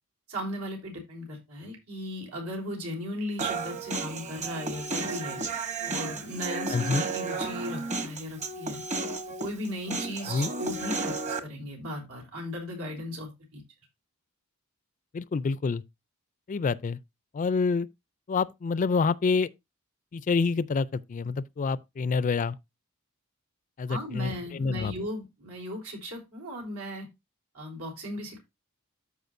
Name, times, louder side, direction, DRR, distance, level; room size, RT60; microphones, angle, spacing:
voice 1, 0.3-5.4 5.8-8.8 9.4-13.6 23.9-27.1 27.5-28.4, equal, 90° right, 3.7 m, -37 dB
Human voice, 3.4-11.4, right 3 dB, 35° right, 1.0 m, -33 dB
voice 2, 6.7-7.0 10.3-10.5 15.1-15.8 16.5-17.0 17.3-17.9 18.3-19.5 20.1-22.6 23.8-24.9, left 4 dB, 35° left, 0.3 m, -27 dB
13.0 x 4.9 x 2.6 m
head